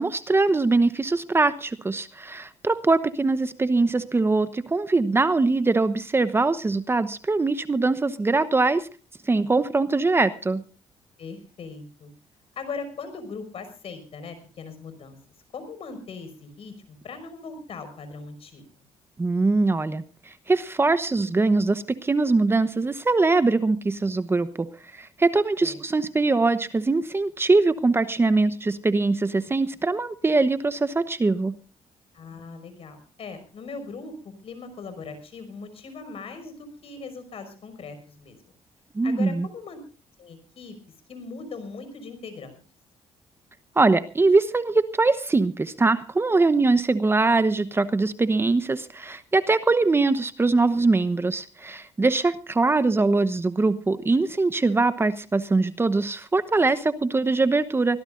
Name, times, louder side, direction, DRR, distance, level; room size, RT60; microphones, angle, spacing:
voice 1, 0.0-8.9 9.3-10.6 19.2-31.5 38.9-39.5 43.8-58.0, right 3 dB, 20° right, 12 dB, 1.0 m, -22 dB
voice 2, 11.2-12.1 12.6-15.2 15.5-18.6 25.6-25.8 32.1-38.4 39.0-39.8 40.2-40.8 41.1-42.6, left 4 dB, 55° left, 10 dB, 5.6 m, -39 dB
25.0 x 16.5 x 2.5 m, 0.34 s
cardioid pair, 105°, 12 cm